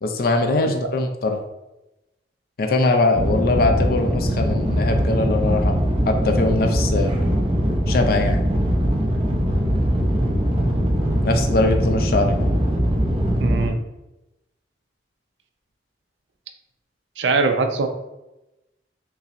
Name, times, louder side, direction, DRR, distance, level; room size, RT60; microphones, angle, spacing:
voice 1, 0.0-1.4 2.6-7.1 7.9-8.4 11.2-12.5, left 2 dB, 55° left, 5 dB, 0.4 m, -21 dB
sound 1, 3.1-13.7, equal, 30° right, 0.5 m, -21 dB
voice 2, 13.4-13.8 17.2-17.9, right 4 dB, 90° right, 7 dB, 0.4 m, -22 dB
5.4 x 2.0 x 2.5 m, 0.97 s
head